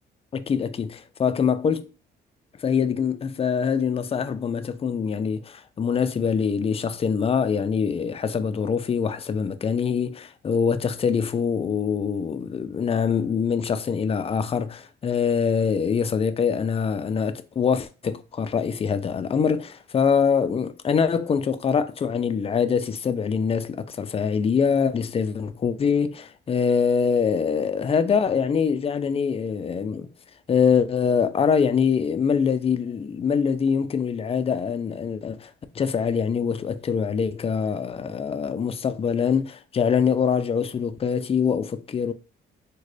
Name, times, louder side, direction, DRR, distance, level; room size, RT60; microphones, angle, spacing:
voice 1, 0.3-1.9 2.6-30.1 30.5-42.1, left 6 dB, 30° left, 0.4 m, -24 dB
3.7 x 2.2 x 3.2 m
cardioid pair, 90°, 20 cm